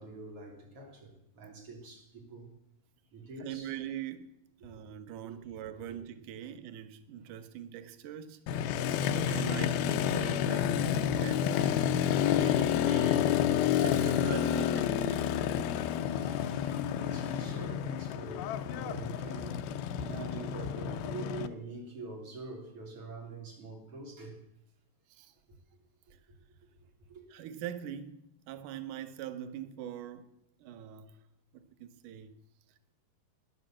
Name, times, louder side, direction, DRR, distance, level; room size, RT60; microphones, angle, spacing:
voice 1, 0.0-2.5 3.1-3.7 5.2-5.4 5.9-6.0 10.5-10.9 11.6-12.4 16.1-24.4 27.1-27.2, right 2 dB, 35° right, 3.7 m, -45 dB
voice 2, 3.4-4.3 4.6-13.4 13.8-15.4 25.1-25.3 27.3-28.2 28.5-30.3 30.6-31.1 31.8-32.3, right 10 dB, 90° right, 1.7 m, -42 dB
Motorcycle, 8.5-21.5, left 9 dB, 80° left, 2.4 m, -29 dB
15.0 x 10.5 x 7.4 m
omnidirectional pair, 4.8 m